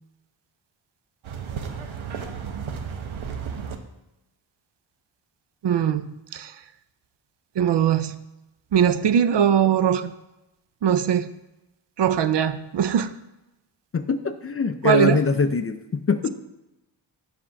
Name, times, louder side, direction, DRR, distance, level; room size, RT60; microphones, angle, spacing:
sound 1, 1.2-3.8, right 6 dB, 90° right, 0.9 m, -33 dB
voice 1, 5.6-6.0 6.3-6.5 7.6-8.2 8.7-10.1 10.8-11.3 12.0-13.1 14.8-15.2, right 8 dB, 65° right, 12 dB, 0.6 m, -20 dB
voice 2, 13.9-16.3, left 4 dB, 30° left, 9 dB, 0.4 m, -23 dB
7.5 x 4.3 x 5.7 m, 0.96 s
wide cardioid pair, 100°, 47 cm